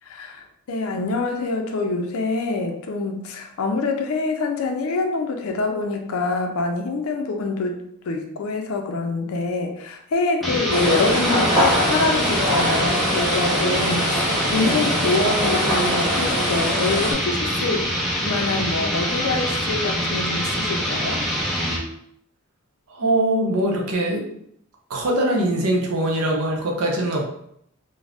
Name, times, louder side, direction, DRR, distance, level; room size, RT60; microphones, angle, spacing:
voice 1, 0.1-7.8 8.1-17.9 18.2-21.2, left 3 dB, 70° left, 3 dB, 0.4 m, -25 dB
sound 1, 10.4-21.9, equal, ahead, 0.3 m, -25 dB
sound 2, 10.7-17.1, equal, 30° right, 1.0 m, -23 dB
voice 2, 22.9-24.3 24.9-27.2, right 1 dB, 85° right, 0 dB, 0.6 m, -22 dB
2.4 x 2.0 x 3.3 m, 0.72 s
head